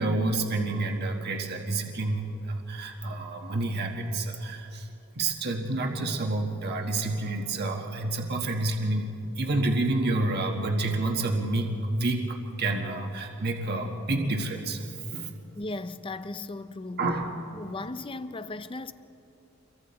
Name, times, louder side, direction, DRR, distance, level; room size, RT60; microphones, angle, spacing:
voice 1, 0.0-4.9 5.1-9.1 9.4-14.9 15.1-15.3 17.0-17.3, right 2 dB, 50° right, 1.4 m, -29 dB
voice 2, 15.6-17.1 17.5-18.9, left 2 dB, 25° left, 0.6 m, -37 dB
28.5 x 23.5 x 4.2 m
head